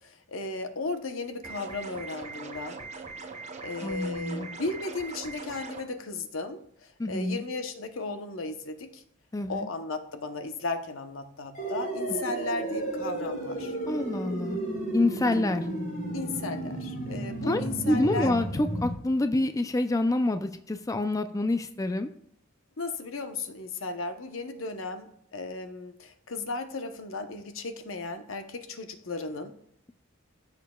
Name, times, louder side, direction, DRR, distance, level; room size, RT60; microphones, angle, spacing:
voice 1, 0.0-2.8 3.6-9.0 9.5-13.8 16.1-18.3 22.8-29.6, left 3 dB, 75° left, 7 dB, 0.9 m, -35 dB
sound 1, 1.4-5.8, right 4 dB, 35° right, 0.8 m, -41 dB
voice 2, 3.8-4.5 7.0-7.4 9.3-9.7 13.9-14.6 14.9-15.7 17.4-22.1, left 2 dB, 15° left, 8 dB, 0.4 m, -27 dB
sound 2, 11.5-18.9, right 1 dB, 45° left, 3.2 m, -33 dB
15.5 x 6.6 x 2.3 m, 0.70 s
head